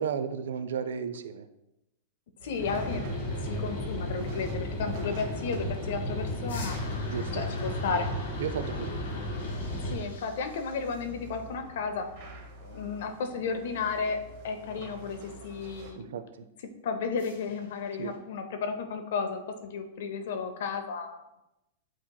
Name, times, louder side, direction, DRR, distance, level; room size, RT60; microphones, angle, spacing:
voice 1, 0.0-1.5 7.1-7.4 8.4-9.0 16.0-16.4 18.0-18.1, right 7 dB, 80° right, 10 dB, 0.4 m, -34 dB
voice 2, 2.4-3.1 3.4-6.8 7.3-8.2 9.8-16.2 16.6-21.4, left 5 dB, 60° left, 7 dB, 0.6 m, -33 dB
sound 1, 2.4-15.9, right 2 dB, 45° right, 0.8 m, -46 dB
sound 2, 2.6-10.0, left 1 dB, 35° left, 1.5 m, -34 dB
sound 3, 6.5-11.5 17.2-18.2, left 3 dB, 90° left, 1.2 m, -47 dB
7.9 x 2.9 x 2.2 m, 0.92 s
supercardioid pair, 165°, 0 cm